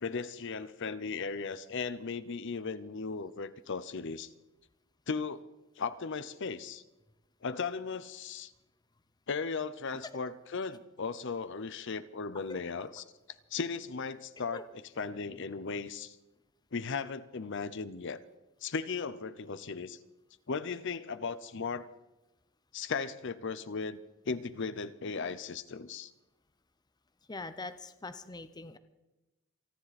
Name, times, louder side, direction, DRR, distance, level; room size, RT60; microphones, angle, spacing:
voice 1, 0.0-4.3 5.1-5.4 5.8-6.8 7.4-8.5 9.3-13.0 13.5-16.2 16.7-18.2 18.6-20.0 20.5-21.9 22.7-24.0 24.3-26.1, left 5 dB, 55° left, 13 dB, 0.7 m, -37 dB
voice 2, 27.3-28.8, left 3 dB, 20° left, 11 dB, 0.7 m, -42 dB
28.5 x 10.5 x 4.2 m, 1.0 s
head